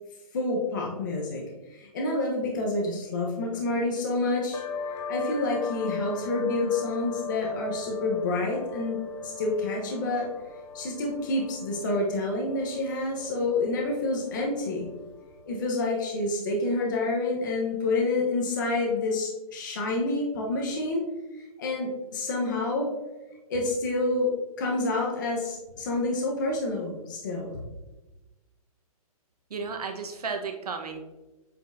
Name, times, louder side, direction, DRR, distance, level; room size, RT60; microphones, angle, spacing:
voice 1, 0.3-1.4 1.7-4.6 5.1-10.3 10.7-14.9 15.5-21.0 21.6-22.9 23.5-24.3 24.6-27.5, left 2 dB, 30° left, -1 dB, 0.9 m, -28 dB
sound 1, 4.5-15.8, left 3 dB, 55° left, 0.6 m, -39 dB
voice 2, 29.5-31.0, right 5 dB, 85° right, 5 dB, 1.1 m, -33 dB
8.2 x 4.5 x 2.6 m, 1.1 s
hypercardioid pair, 180°, 19 cm